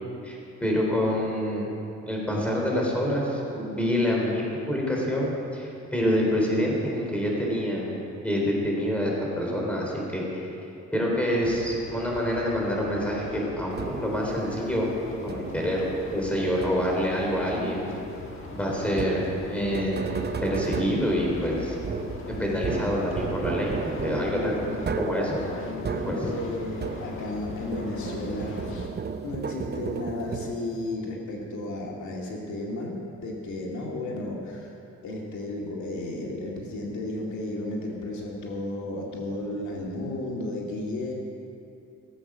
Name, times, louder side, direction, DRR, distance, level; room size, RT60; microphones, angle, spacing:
voice 1, 0.2-1.7 2.1-7.9 8.2-10.5 10.9-14.9 15.2-15.8 16.1-17.8 18.5-20.1 20.4-21.8 22.3-24.7 25.0-25.4 26.0-26.3, equal, 5° left, -2 dB, 3.8 m, -27 dB
sound 1, 11.4-28.9, left 3 dB, 40° left, 1.7 m, -40 dB
sound 2, 13.8-14.3 15.3-15.8 16.6-17.2 18.9-27.4 27.7-30.9, right 5 dB, 35° right, 0.8 m, -34 dB
voice 2, 24.0-25.0 25.5-28.9 29.2-34.7 35.0-41.1, left 2 dB, 70° left, -2 dB, 2.2 m, -33 dB
17.0 x 8.3 x 6.2 m, 2.7 s
cardioid pair, 90°, 30 cm